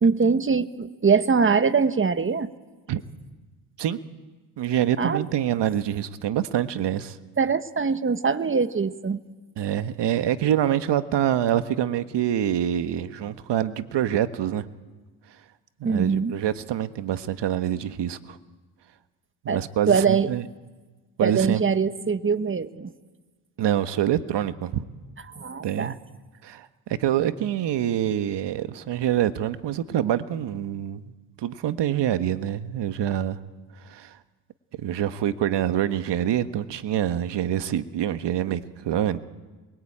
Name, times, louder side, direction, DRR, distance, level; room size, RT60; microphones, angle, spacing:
voice 1, 0.0-2.5 5.0-5.2 7.4-9.2 15.8-16.3 19.5-19.6 19.9-20.3 21.2-22.9 25.3-25.9, right 5 dB, 25° right, 12 dB, 1.4 m, -22 dB
voice 2, 4.6-7.2 9.6-14.7 15.3-15.4 15.8-18.4 19.4-20.5 21.2-21.6 23.6-24.8 25.6-26.0 26.4-31.1 31.4-33.4 33.8-34.2 34.8-39.2, right 11 dB, 60° right, 11 dB, 1.5 m, -26 dB
28.0 x 22.0 x 8.8 m, 1.3 s
supercardioid pair, 70°, 48 cm